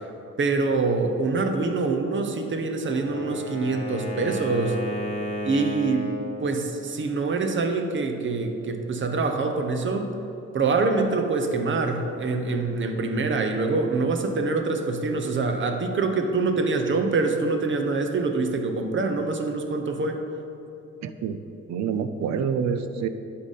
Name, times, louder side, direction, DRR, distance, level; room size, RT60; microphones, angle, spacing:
voice 1, 0.4-4.8 5.4-6.1 6.4-10.1 10.5-20.2, right 3 dB, 40° right, 5 dB, 0.8 m, -25 dB
Wind instrument woodwind instrument, 2.7-6.3, left 1 dB, 20° left, 1.3 m, -33 dB
voice 2, 21.0-21.4 21.7-23.1, right 7 dB, 65° right, 11 dB, 0.5 m, -27 dB
11.5 x 3.8 x 4.1 m, 2.9 s
cardioid pair, 90°, 30 cm